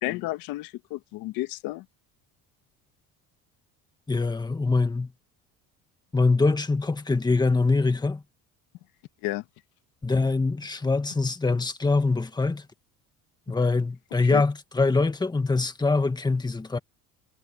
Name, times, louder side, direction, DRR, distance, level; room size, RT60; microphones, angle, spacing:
voice 1, 0.0-1.8 9.2-9.4 14.3-14.4, left 19 dB, 85° left, 1.7 m, -31 dB
voice 2, 4.1-5.1 6.1-8.2 10.0-12.7 13.5-16.8, left 3 dB, 10° left, 1.8 m, -24 dB
cardioid pair, 130°, 34 cm